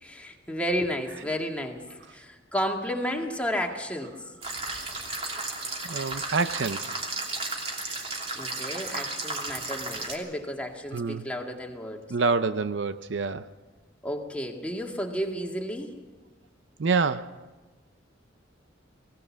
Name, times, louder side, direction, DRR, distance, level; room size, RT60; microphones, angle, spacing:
voice 1, 0.0-4.2 8.4-12.1 14.0-15.9, equal, 5° left, 1.9 m, -32 dB
sound 1, 4.4-10.2, right 2 dB, 30° right, 2.9 m, -34 dB
voice 2, 5.8-7.0 10.9-11.3 12.1-13.5 16.8-17.3, right 4 dB, 70° right, 0.6 m, -27 dB
21.5 x 16.5 x 7.3 m
head